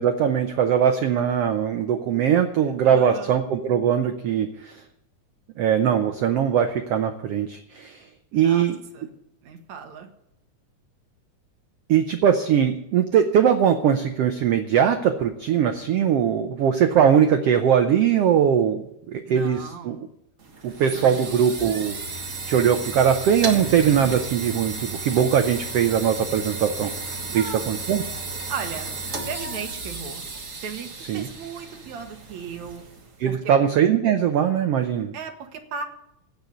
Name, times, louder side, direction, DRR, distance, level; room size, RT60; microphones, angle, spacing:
voice 1, 0.0-4.8 5.6-8.0 8.3-8.8 11.9-20.1 20.6-22.0 22.5-26.9 27.3-28.0 31.1-31.3 33.2-35.1, right 8 dB, 80° right, 7 dB, 1.3 m, -21 dB
voice 2, 2.9-3.4 8.3-8.7 8.9-9.1 9.4-10.1 19.3-20.0 20.9-21.3 27.3-27.7 28.5-28.9 29.3-30.2 30.6-32.8 33.3-33.4 35.1-35.8, right 6 dB, 65° right, 6 dB, 2.4 m, -36 dB
sound 1, 20.4-33.2, right 3 dB, 45° right, 1.0 m, -34 dB
16.0 x 5.4 x 9.4 m, 0.78 s
omnidirectional pair, 3.8 m